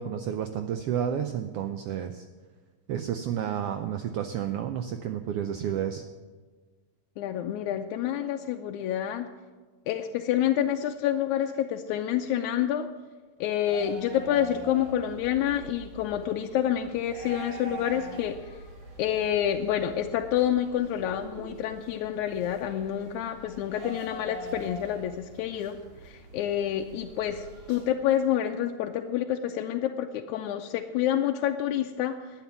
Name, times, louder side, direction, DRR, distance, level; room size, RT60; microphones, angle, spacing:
voice 1, 0.0-2.3 2.9-6.0, right 9 dB, 90° right, 7 dB, 1.3 m, -31 dB
voice 2, 7.2-9.3 9.9-12.9 13.4-18.4 19.0-25.8 26.0-32.2, left 10 dB, 85° left, 5 dB, 2.0 m, -28 dB
sound 1, 13.6-27.9, right 2 dB, 55° right, 3.3 m, -44 dB
11.5 x 9.4 x 7.3 m, 1.4 s
omnidirectional pair, 3.4 m